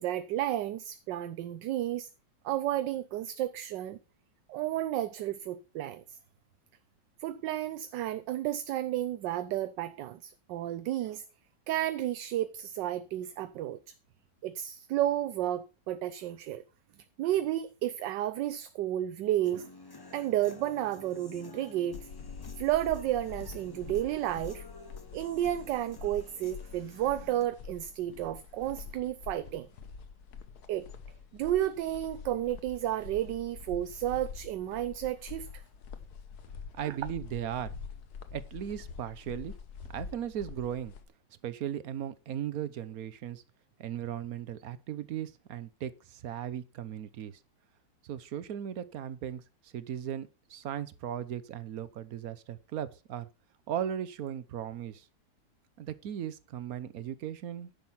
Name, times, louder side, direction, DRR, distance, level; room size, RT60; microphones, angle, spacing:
voice 1, 0.0-2.1 2.4-4.0 4.5-6.2 7.2-11.2 11.7-13.8 14.4-16.6 17.2-19.7 20.1-22.1 22.6-24.6 25.1-29.7 30.7-30.9 31.3-35.6 36.8-37.0, right 13 dB, 80° right, 1.3 m, -32 dB
Human voice / Guitar, 19.4-27.5, left 3 dB, 30° left, 0.4 m, -51 dB
sound 1, 21.9-41.0, left 6 dB, 65° left, 1.5 m, -46 dB
voice 2, 36.8-37.7 38.3-39.5 39.9-40.9 41.4-43.4 43.8-47.4 48.0-53.3 53.7-55.1 55.8-57.8, right 10 dB, 60° right, 1.1 m, -37 dB
10.5 x 6.1 x 5.6 m
omnidirectional pair, 1.9 m